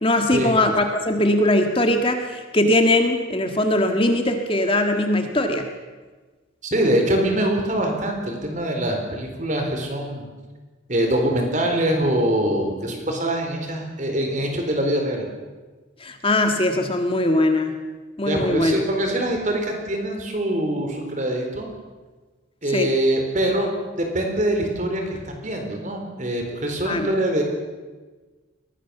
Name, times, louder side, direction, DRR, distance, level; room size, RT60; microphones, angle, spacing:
voice 1, 0.0-5.7 16.0-17.7 18.2-18.7 22.7-22.9 26.9-27.1, left 1 dB, 25° left, 5 dB, 1.7 m, -20 dB
voice 2, 6.6-10.2 10.9-15.2 18.3-21.7 22.6-23.7 24.0-27.4, right 1 dB, 40° right, 3 dB, 4.2 m, -23 dB
22.0 x 18.5 x 7.1 m, 1.3 s
head